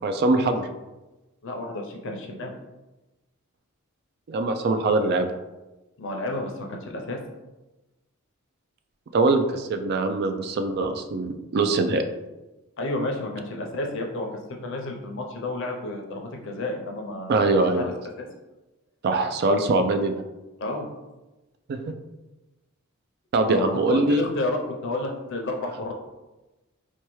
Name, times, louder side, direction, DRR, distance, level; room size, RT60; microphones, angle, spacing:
voice 1, 0.0-0.7 4.3-5.3 9.1-12.0 17.3-17.8 19.0-20.2 21.7-21.8 23.3-24.2, right 2 dB, 50° right, 7 dB, 0.3 m, -22 dB
voice 2, 1.4-2.5 6.0-7.2 12.8-17.5 17.8-18.3 20.6-20.9 23.4-25.9, left 2 dB, 60° left, 2 dB, 0.6 m, -31 dB
4.3 x 2.3 x 3.0 m, 1.1 s
head